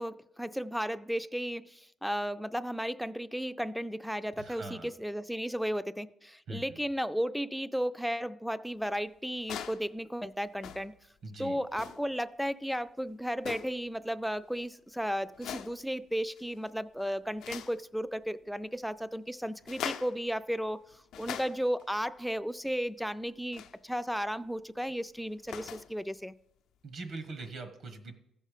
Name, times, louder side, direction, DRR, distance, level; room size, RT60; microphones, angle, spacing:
voice 1, 0.0-10.9 11.4-26.3, equal, ahead, 0.4 m, -34 dB
voice 2, 4.4-4.9 6.5-6.6 11.2-11.6 26.8-28.1, right 3 dB, 65° right, 1.2 m, -42 dB
sound 1, 9.3-9.9 10.5-11.0 11.7-12.1 13.4-13.9 15.3-15.8 16.3-16.7 17.0-17.8 19.6-20.2 20.9-21.8 23.5-23.8 25.2-25.9 27.4-27.5, left 9 dB, 80° left, 0.6 m, -42 dB
14.5 x 5.4 x 5.0 m
cardioid pair, 90°, 0 cm